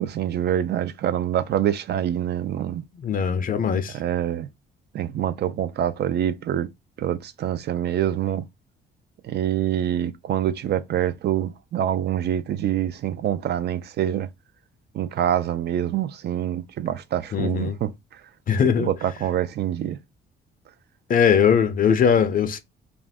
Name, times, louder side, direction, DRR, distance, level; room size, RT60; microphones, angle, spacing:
voice 1, 0.0-2.8 3.9-4.5 4.9-6.7 7.0-8.5 9.2-14.3 14.9-18.2 18.8-20.0, right 10 dB, 55° right, 0.4 m, -25 dB
voice 2, 3.0-4.0 17.3-17.8 18.5-18.9 21.1-22.6, left 7 dB, 45° left, 0.5 m, -20 dB
2.4 x 2.0 x 3.4 m
cardioid pair, 90°, 20 cm